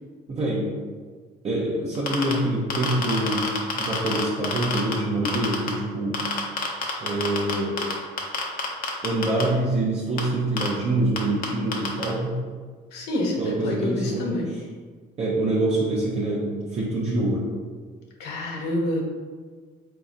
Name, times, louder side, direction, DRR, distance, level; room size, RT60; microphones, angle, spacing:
voice 1, 0.3-0.7 1.4-3.5 3.8-6.3 7.0-7.8 9.0-12.4 13.4-14.3 15.2-17.4, right 1 dB, 40° right, -5 dB, 0.8 m, -25 dB
sound 1, 1.9-2.3 2.7-4.9 5.3-5.7 6.1-7.9 8.2-9.4 10.2-10.3 10.6-10.7 11.2-11.3 11.4-11.5 11.7-12.0, left 6 dB, 55° left, 0.9 m, -26 dB
voice 2, 12.9-14.5 18.2-19.0, left 1 dB, 85° left, -1 dB, 1.0 m, -27 dB
4.0 x 2.9 x 3.7 m, 1.5 s
cardioid pair, 110°, 17 cm